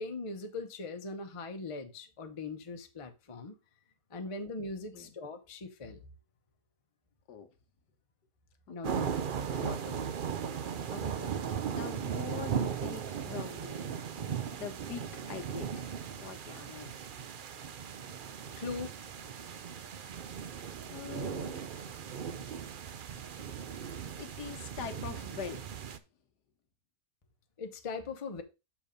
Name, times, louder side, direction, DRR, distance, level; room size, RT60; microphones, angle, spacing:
voice 1, 0.0-3.5 4.1-6.0 8.7-10.0 18.6-19.0 27.6-28.4, left 3 dB, 30° left, 0.7 m, -40 dB
sound 1, 8.8-26.0, right 7 dB, 85° right, 0.4 m, -37 dB
voice 2, 10.9-11.4 11.7-13.9 14.5-15.9 16.2-16.9 20.8-21.7 24.2-25.6, left 7 dB, 85° left, 1.6 m, -44 dB
6.9 x 4.6 x 5.1 m
omnidirectional pair, 1.7 m